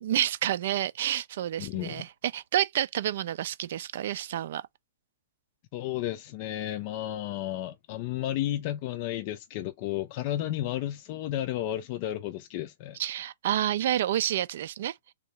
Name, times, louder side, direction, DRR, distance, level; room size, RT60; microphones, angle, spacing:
voice 1, 0.0-4.6 13.0-14.9, right 12 dB, 50° right, 0.4 m, -29 dB
voice 2, 1.6-2.0 5.7-13.0, left 13 dB, 40° left, 0.5 m, -32 dB
3.6 x 2.7 x 4.1 m
figure-of-eight pair, 110°, 0 cm